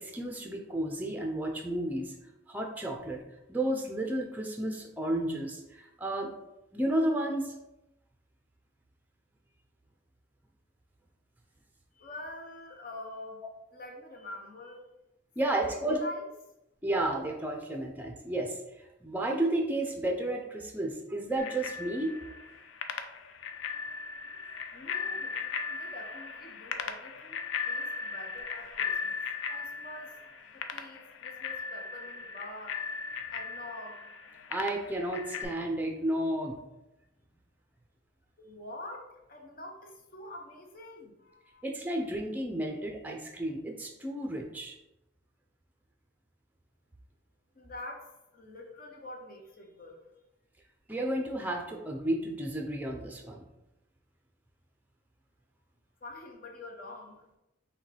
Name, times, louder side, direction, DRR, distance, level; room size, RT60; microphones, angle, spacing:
voice 1, 0.0-2.1 2.5-3.2 3.5-6.3 6.7-7.5 15.4-16.0 16.8-18.6 19.0-22.1 29.5-29.6 34.5-36.6 41.6-44.8 50.9-53.4, right 1 dB, 10° right, 1 dB, 0.5 m, -32 dB
voice 2, 11.9-13.4 13.7-14.9 15.4-16.3 24.7-25.4 25.7-29.2 29.5-30.2 30.5-32.8 33.3-34.0 38.4-41.6 47.5-50.1 56.0-57.3, left 1 dB, 45° left, 1 dB, 0.7 m, -46 dB
Bicycle bell, 21.4-35.4, left 5 dB, 75° left, 0.4 m, -38 dB
6.1 x 2.3 x 3.3 m, 0.93 s
head